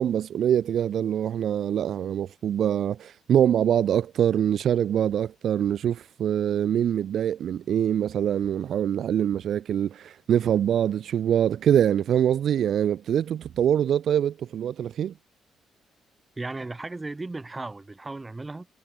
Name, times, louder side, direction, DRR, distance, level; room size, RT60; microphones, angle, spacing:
voice 1, 0.0-15.1, right 9 dB, 65° right, 0.9 m, -24 dB
voice 2, 16.4-18.7, right 2 dB, 20° right, 3.7 m, -35 dB
cardioid pair, 90°, 0 cm